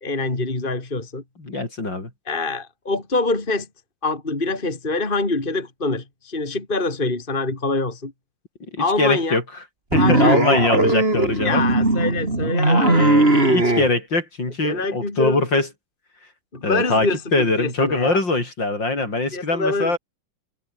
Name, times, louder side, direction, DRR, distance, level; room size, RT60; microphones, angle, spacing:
voice 1, 0.0-1.2 2.3-3.7 4.0-8.1 8.8-9.4 9.9-10.6 11.4-13.1 14.6-15.5 16.5-18.2 19.3-20.0, left 3 dB, 25° left, 3.2 m, -25 dB
voice 2, 1.4-2.1 8.7-9.4 9.9-11.6 12.6-15.7 16.6-20.0, left 2 dB, 55° left, 6.9 m, -22 dB
sound 1, 9.9-13.9, right 2 dB, 25° right, 4.6 m, -18 dB
omnidirectional pair, 2.4 m